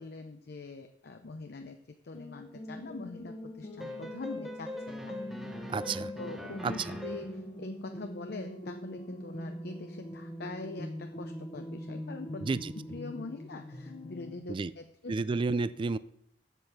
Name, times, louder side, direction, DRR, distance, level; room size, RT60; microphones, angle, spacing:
voice 1, 0.0-5.5 6.2-12.5 12.9-15.1, left 3 dB, 60° left, 6 dB, 0.6 m, -43 dB
sound 1, 2.1-14.4, equal, 30° left, 0.9 m, -43 dB
sound 2, 3.8-7.4, left 1 dB, ahead, 0.9 m, -41 dB
voice 2, 5.7-6.1 6.6-6.7 12.4-12.7 14.5-14.7 15.1-16.0, right 4 dB, 30° right, 16 dB, 0.3 m, -30 dB
8.1 x 7.4 x 5.9 m, 0.70 s
head